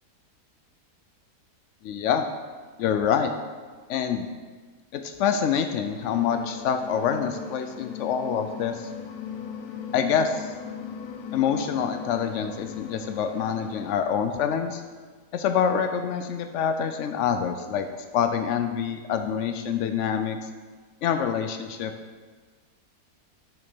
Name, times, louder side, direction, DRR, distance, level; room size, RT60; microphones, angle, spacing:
voice 1, 1.8-2.3 2.8-3.3 3.9-4.3 4.9-8.9 9.9-10.5 11.3-14.8 15.3-17.9 18.1-20.5 21.0-21.9, left 7 dB, 90° left, 8 dB, 0.6 m, -26 dB
sound 1, 5.9-14.0, left 6 dB, 60° left, 1.0 m, -38 dB
7.0 x 6.4 x 6.0 m, 1.5 s
omnidirectional pair, 1.8 m